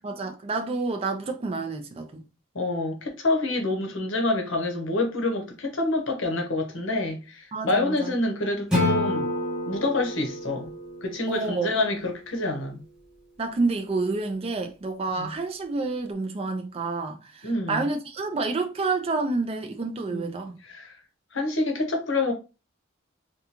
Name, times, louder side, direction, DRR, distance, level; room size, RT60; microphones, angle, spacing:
voice 1, 0.0-2.2 7.5-8.1 11.3-11.7 13.4-20.6, right 3 dB, 30° right, 0.4 m, -29 dB
voice 2, 2.5-9.3 9.7-10.7 11.0-12.8 15.2-15.3 17.4-17.9 20.1-20.3 20.6-21.0 21.3-22.3, left 2 dB, 70° left, 0.9 m, -27 dB
Acoustic guitar / Strum, 8.7-11.9, left 2 dB, 5° right, 1.2 m, -28 dB
3.6 x 2.3 x 2.8 m
head